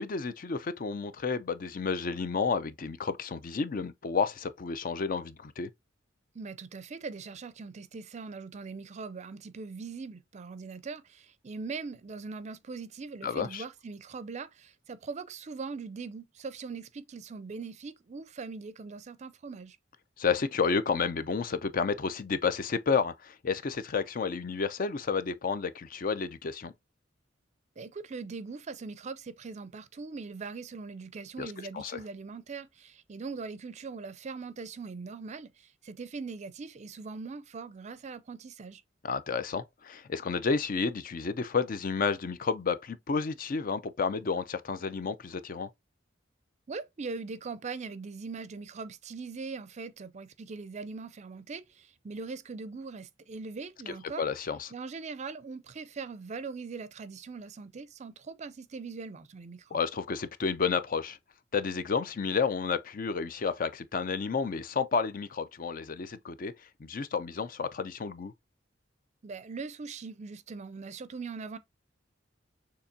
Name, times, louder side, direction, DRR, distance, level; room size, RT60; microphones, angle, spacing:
voice 1, 0.0-5.7 13.2-13.6 20.2-26.7 31.4-31.5 31.7-32.0 39.0-45.7 53.9-54.7 59.7-61.2 61.5-66.5 66.8-68.3, left 5 dB, 45° left, 0.5 m, -31 dB
voice 2, 6.3-19.8 27.8-38.8 46.7-54.2 54.7-59.8 69.2-71.6, right 4 dB, 40° right, 0.4 m, -41 dB
6.7 x 2.9 x 2.7 m
head